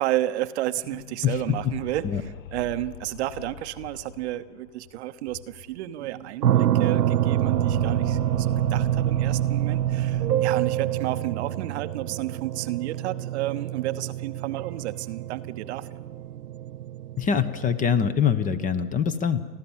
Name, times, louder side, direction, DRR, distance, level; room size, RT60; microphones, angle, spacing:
voice 1, 0.0-16.0, right 15 dB, 45° right, 13 dB, 0.9 m, -31 dB
sound 1, 0.6-6.0 6.2-6.3 6.6-10.9, left 7 dB, 55° left, 1.3 m, -42 dB
voice 2, 1.2-1.7 2.0-2.2 17.2-19.5, left 7 dB, 15° left, 13 dB, 0.9 m, -24 dB
sound 2, 6.0-17.9, right 12 dB, 90° right, 0.6 m, -26 dB
29.5 x 12.5 x 7.3 m, 1.4 s
hypercardioid pair, 105°, 46 cm